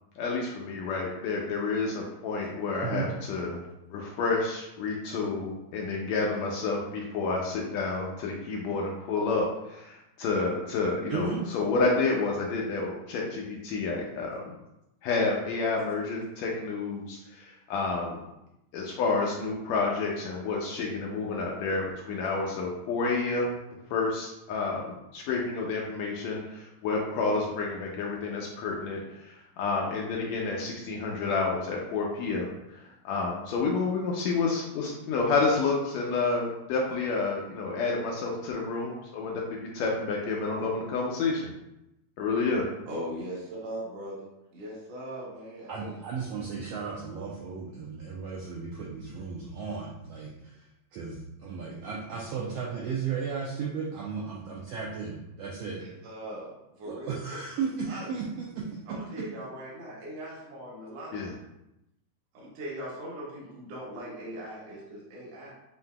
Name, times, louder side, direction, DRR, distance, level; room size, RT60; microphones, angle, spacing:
voice 1, 0.2-3.6 3.9-14.5 15.0-18.2 18.7-23.6 23.9-41.5 42.2-42.6 61.1-61.3, left 3 dB, 80° left, -1 dB, 1.7 m, -29 dB
voice 2, 11.1-11.4 45.7-55.8 56.8-58.8, right 5 dB, 85° right, -4 dB, 1.4 m, -35 dB
voice 3, 42.9-45.9 55.8-57.1 57.9-58.1 58.9-61.4 62.3-65.5, right 1 dB, 60° right, -7 dB, 2.1 m, -40 dB
7.4 x 2.6 x 2.2 m, 0.89 s
omnidirectional pair, 3.4 m